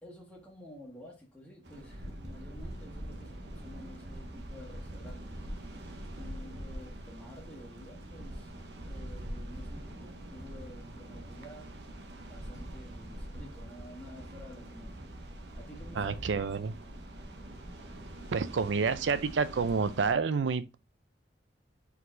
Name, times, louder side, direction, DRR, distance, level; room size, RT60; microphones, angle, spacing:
voice 1, 0.0-5.4 6.2-8.5 8.8-11.7 12.3-15.0 15.5-17.0, left 1 dB, 5° left, 1.4 m, -51 dB
sound 1, 1.6-20.1, right 1 dB, 70° right, 0.9 m, -44 dB
voice 2, 15.9-16.8 18.3-20.8, right 5 dB, 85° right, 0.5 m, -29 dB
4.7 x 4.0 x 2.5 m
head